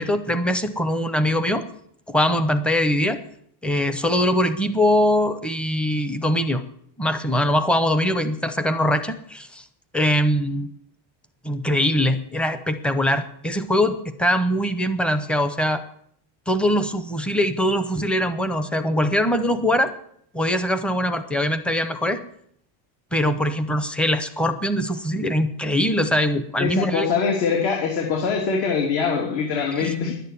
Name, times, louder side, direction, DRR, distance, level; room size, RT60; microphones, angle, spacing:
voice 1, 0.0-1.6 2.1-3.2 3.6-6.6 7.0-9.6 9.9-10.7 11.4-15.8 16.5-19.9 20.3-22.2 23.1-27.1 29.8-29.9, equal, ahead, 11 dB, 0.6 m, -22 dB
voice 2, 26.6-30.2, left 5 dB, 60° left, 1 dB, 3.0 m, -23 dB
11.5 x 9.1 x 9.7 m, 0.68 s
cardioid pair, 160°, 50 cm